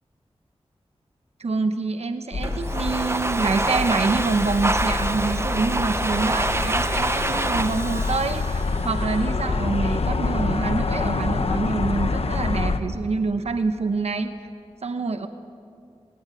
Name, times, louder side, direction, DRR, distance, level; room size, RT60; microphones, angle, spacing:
voice 1, 1.4-14.3 14.8-15.3, right 4 dB, 75° right, 8 dB, 1.0 m, -26 dB
sound 1, 2.3-12.8, left 3 dB, 65° left, 1.0 m, -27 dB
Domestic sounds home sounds, 2.4-9.3, right 2 dB, 25° right, 0.9 m, -27 dB
20.5 x 17.5 x 9.3 m, 2.3 s
wide cardioid pair, 85°, 11 cm